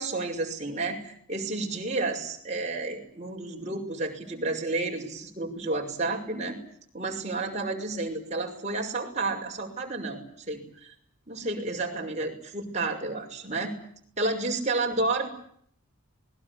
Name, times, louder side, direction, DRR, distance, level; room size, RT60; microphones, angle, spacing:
voice 1, 0.0-6.6 6.9-10.2 10.5-10.9 11.3-13.7 14.2-15.3, right 2 dB, 30° right, 1 dB, 6.1 m, -31 dB
27.5 x 21.5 x 8.6 m, 0.65 s
head